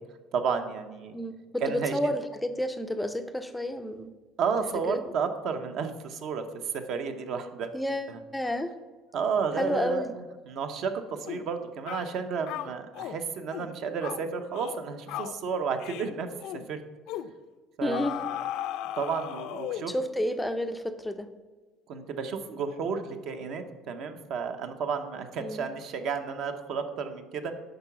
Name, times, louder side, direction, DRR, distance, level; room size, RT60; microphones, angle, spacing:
voice 1, 0.3-1.2 1.6-2.0 4.4-6.4 6.7-7.7 8.1-8.2 9.1-10.0 10.5-16.3 16.7-16.8 17.8-18.2 19.0-19.9 21.9-27.5, right 6 dB, 55° right, 7 dB, 0.8 m, -32 dB
voice 2, 1.1-4.1 4.9-5.0 7.7-8.7 9.6-10.1 17.8-18.2 19.9-21.3 25.4-25.7, left 1 dB, 5° left, 8 dB, 0.4 m, -30 dB
sound 1, 11.3-11.5 11.9-12.1 12.5-13.2 13.5-13.7 14.0-14.2 14.5-14.8 15.1-15.4 15.8-16.1 16.4-16.6 17.1-17.3 17.9-20.0, left 12 dB, 70° left, 0.5 m, -36 dB
10.5 x 4.0 x 5.9 m, 1.3 s
cardioid pair, 140°, 0 cm